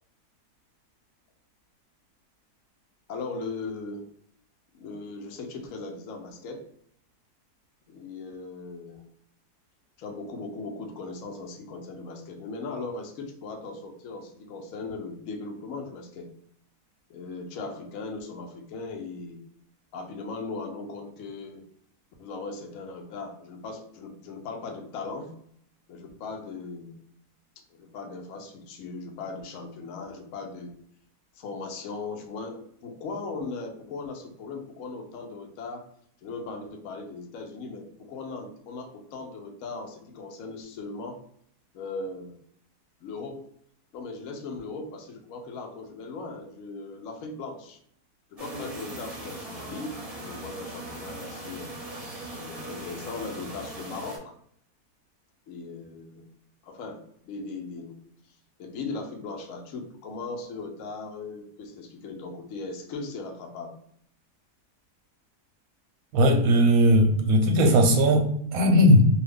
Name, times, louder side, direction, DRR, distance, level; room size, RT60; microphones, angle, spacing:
voice 1, 3.1-4.1 4.7-6.7 7.9-9.1 10.0-16.3 17.1-19.4 19.9-21.6 22.2-25.3 25.9-27.0 27.7-30.7 31.4-35.9 36.2-41.2 41.7-42.4 43.0-43.4 43.9-47.8 48.3-51.8 52.3-54.3 55.5-56.3 56.6-58.0 58.6-63.8, left 3 dB, 65° left, 3 dB, 0.9 m, -38 dB
sound 1, 48.4-54.2, right 1 dB, 30° right, 0.9 m, -39 dB
voice 2, 66.1-69.1, equal, 70° right, 3 dB, 1.0 m, -18 dB
2.7 x 2.3 x 3.4 m, 0.67 s
omnidirectional pair, 1.7 m